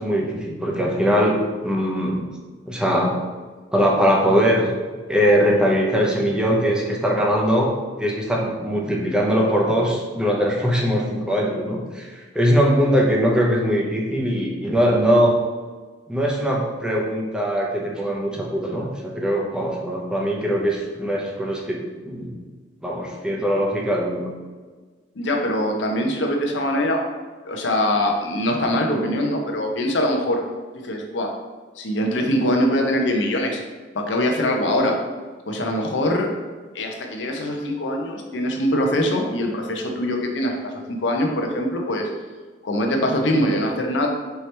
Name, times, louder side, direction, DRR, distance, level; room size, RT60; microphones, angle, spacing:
voice 1, 0.0-2.2 2.7-3.2 3.7-4.7 5.1-15.4 16.1-22.4 22.8-24.3, equal, 5° right, -2 dB, 0.6 m, -21 dB
voice 2, 25.2-27.0 27.5-30.4 30.8-31.3 31.8-33.6 33.9-35.0 35.5-36.3 36.7-42.1 42.6-44.1, left 1 dB, 75° left, 1 dB, 0.7 m, -23 dB
4.5 x 2.9 x 3.2 m, 1.4 s
head